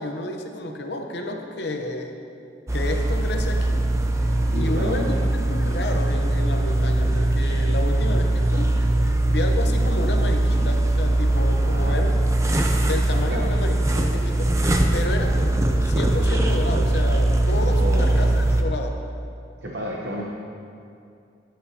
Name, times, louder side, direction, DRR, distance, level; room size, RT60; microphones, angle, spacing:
voice 1, 0.0-2.2 2.7-3.8 4.5-8.7 9.3-12.2 12.8-14.6 14.9-15.4 15.8-19.0, left 2 dB, 60° left, 3 dB, 0.8 m, -31 dB
sound 1, 2.7-18.6, right 1 dB, 15° right, 0.5 m, -21 dB
voice 2, 4.5-5.2 11.7-12.0 13.3-13.5 17.8-18.1 19.6-20.2, equal, 65° right, -2 dB, 1.0 m, -31 dB
13.5 x 9.3 x 2.8 m, 2.5 s
head